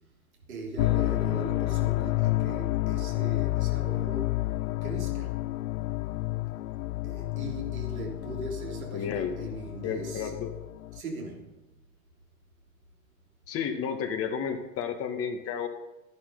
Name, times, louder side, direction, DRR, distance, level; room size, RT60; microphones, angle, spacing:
voice 1, 0.5-4.4 4.8-5.4 7.0-10.3 10.9-11.5, right 3 dB, 80° right, 3.7 m, -40 dB
sound 1, 0.8-11.0, left 18 dB, 75° left, 0.5 m, -30 dB
voice 2, 8.9-9.3 9.8-10.5 13.5-15.7, left 7 dB, 35° left, 1.9 m, -32 dB
12.5 x 10.0 x 5.5 m
hypercardioid pair, 105°, 41 cm